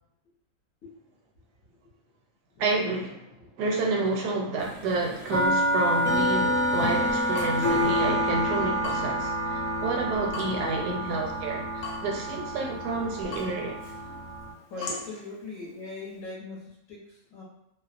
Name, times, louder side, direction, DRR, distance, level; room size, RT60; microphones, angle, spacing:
voice 1, 2.6-3.3 3.6-13.8 14.9-15.0, right 3 dB, 80° right, 0 dB, 1.1 m, -30 dB
sound 1, 4.7-14.5, equal, 15° left, 0.4 m, -28 dB
Water tap faucet / Drip, 6.9-16.2, left 4 dB, 80° left, 1.2 m, -44 dB
voice 2, 10.3-11.5 14.7-17.4, left 3 dB, 65° left, -5 dB, 1.1 m, -41 dB
2.8 x 2.0 x 2.4 m, 0.81 s
omnidirectional pair, 1.8 m